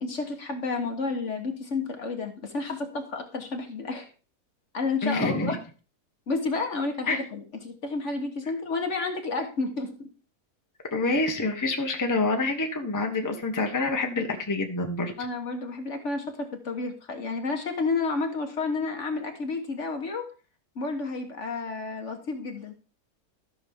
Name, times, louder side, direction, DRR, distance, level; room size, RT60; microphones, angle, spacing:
voice 1, 0.0-4.1 4.7-5.6 6.3-9.9 15.2-20.3 20.7-22.7, left 3 dB, 50° left, 5 dB, 1.5 m, -31 dB
voice 2, 5.0-5.6 7.1-7.2 10.9-15.1, left 3 dB, 15° left, 3 dB, 1.0 m, -27 dB
13.5 x 6.3 x 3.5 m, 0.35 s
omnidirectional pair, 1.6 m